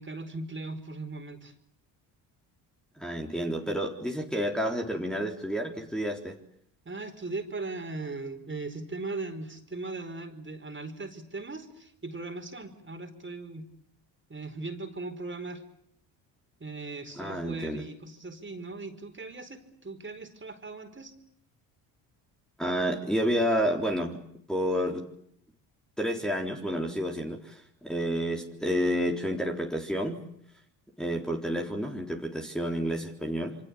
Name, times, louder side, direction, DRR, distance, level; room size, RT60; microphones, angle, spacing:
voice 1, 0.0-1.5 6.8-13.7 14.3-15.6 16.6-21.1, right 3 dB, 25° right, 6 dB, 4.8 m, -38 dB
voice 2, 3.0-6.4 17.2-17.8 22.6-24.2 24.5-25.1 26.0-30.2 31.0-33.6, equal, ahead, 0 dB, 3.9 m, -30 dB
27.5 x 24.5 x 8.6 m, 0.69 s
hypercardioid pair, 60°, 49 cm